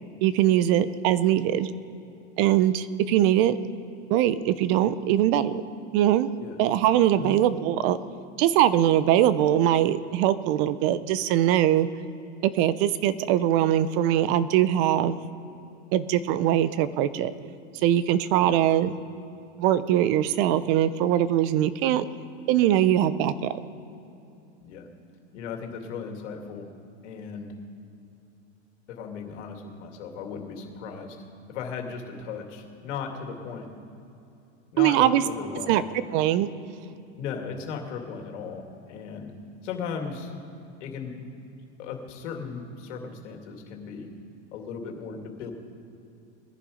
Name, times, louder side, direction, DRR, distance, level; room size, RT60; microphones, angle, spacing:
voice 1, 0.2-1.7 2.4-3.6 4.1-5.5 5.9-6.3 6.6-8.0 8.4-11.9 12.4-15.2 15.9-17.3 17.8-18.9 19.6-22.1 22.5-23.5 34.8-35.2 35.7-35.8 36.1-36.5, right 12 dB, 55° right, 15 dB, 0.7 m, -22 dB
voice 2, 25.3-26.7 27.0-27.5 28.9-31.2 31.5-33.7 34.7-35.9 37.2-39.3 39.6-40.3 40.8-41.3 41.8-44.1 44.5-45.5, left 6 dB, 80° left, 3 dB, 2.5 m, -36 dB
19.5 x 11.0 x 5.1 m, 2.7 s
supercardioid pair, 140°, 36 cm